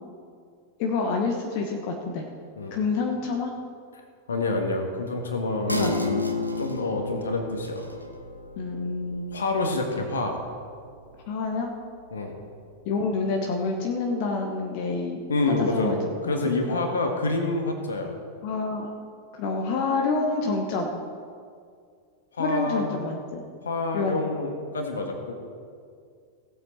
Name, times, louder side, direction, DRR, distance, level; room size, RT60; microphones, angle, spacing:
voice 1, 0.8-2.2 2.7-3.5 5.7-6.3 8.6-9.2 11.3-11.8 12.8-15.2 15.6-16.0 16.4-16.8 18.4-18.9 19.3-20.9 22.4-23.4 23.9-24.2, left 4 dB, 45° left, 2 dB, 1.2 m, -28 dB
voice 2, 4.3-6.0 6.6-7.9 9.3-10.4 12.1-12.4 15.3-16.0 16.2-18.1 22.3-22.9 23.6-25.3, left 2 dB, 70° left, 4 dB, 1.6 m, -27 dB
sound 1, 5.7-12.7 13.1-13.2, left 2 dB, 90° left, 0.9 m, -34 dB
17.0 x 7.9 x 4.4 m, 2.2 s
figure-of-eight pair, 90°, 0 cm